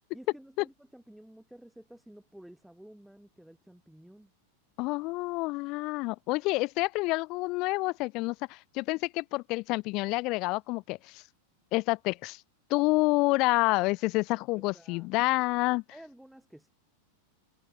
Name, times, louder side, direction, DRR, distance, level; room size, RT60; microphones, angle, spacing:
voice 1, 0.1-4.3 14.5-15.1 15.9-16.7, right 1 dB, ahead, 1.1 m, -52 dB
voice 2, 4.8-11.2 11.7-12.4 12.7-15.8, left 23 dB, 40° left, 0.3 m, -28 dB
figure-of-eight pair, 90°, 0 cm